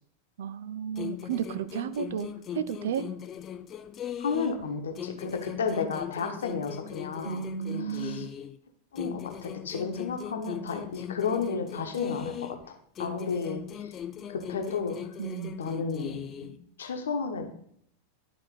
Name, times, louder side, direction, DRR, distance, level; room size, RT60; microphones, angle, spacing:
voice 1, 0.4-3.1 7.2-8.3 15.2-15.6, right 8 dB, 60° right, 15 dB, 0.5 m, -33 dB
sound 1, 1.0-4.7 5.0-8.6 9.0-12.7 13.0-16.6, left 9 dB, 30° left, 0.4 m, -39 dB
voice 2, 4.2-7.4 7.8-8.3 8.9-12.6 13.0-13.9 14.3-15.0 15.6-16.5 16.8-17.5, left 5 dB, 65° left, 5 dB, 1.1 m, -32 dB
11.5 x 4.2 x 4.0 m, 0.67 s
figure-of-eight pair, 90°, 0 cm